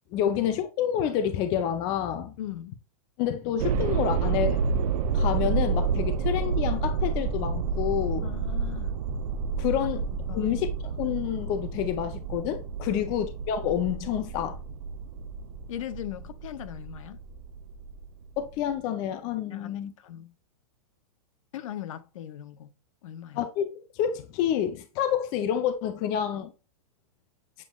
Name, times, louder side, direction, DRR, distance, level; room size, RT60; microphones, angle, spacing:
voice 1, 0.1-2.3 3.2-4.6 5.1-8.3 9.6-10.1 10.3-14.6 18.4-19.9 23.4-26.5, left 9 dB, 20° left, 0.4 m, -28 dB
voice 2, 2.4-2.8 8.2-9.0 9.8-9.9 10.3-10.6 12.9-13.1 15.7-17.2 19.5-20.4 21.5-22.7 23.0-23.5, left 11 dB, 60° left, 0.6 m, -39 dB
sound 1, 3.6-18.7, right 5 dB, 80° right, 0.4 m, -29 dB
7.4 x 3.0 x 2.2 m
supercardioid pair, 165°, 19 cm